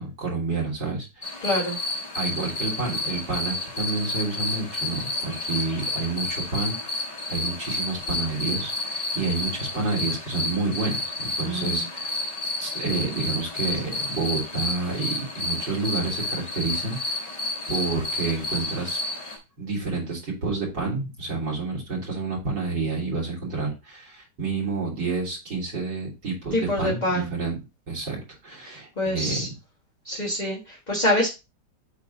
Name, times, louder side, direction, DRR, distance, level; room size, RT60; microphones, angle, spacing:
voice 1, 0.0-1.4 2.1-12.1 12.6-17.3 17.7-19.0 19.6-27.6 27.9-28.2 28.4-29.5, right 3 dB, 80° right, -1 dB, 3.8 m, -29 dB
sound 1, 1.2-19.4, left 2 dB, 75° left, 3.5 m, -31 dB
voice 2, 1.4-1.8 11.4-11.8 26.5-27.3 28.6-29.5 30.1-31.3, left 1 dB, 25° left, -4 dB, 1.8 m, -26 dB
8.2 x 3.8 x 4.0 m, 0.26 s
omnidirectional pair, 1.9 m